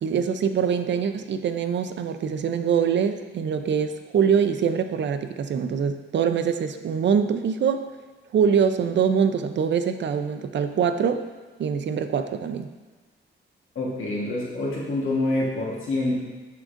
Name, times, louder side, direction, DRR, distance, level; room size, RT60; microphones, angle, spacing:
voice 1, 0.0-7.9 8.3-11.2 11.6-12.7, right 7 dB, 65° right, 8 dB, 0.5 m, -24 dB
voice 2, 13.7-16.2, left 2 dB, 85° left, -4 dB, 1.3 m, -26 dB
11.0 x 3.8 x 2.5 m, 1.3 s
wide cardioid pair, 110°, 20 cm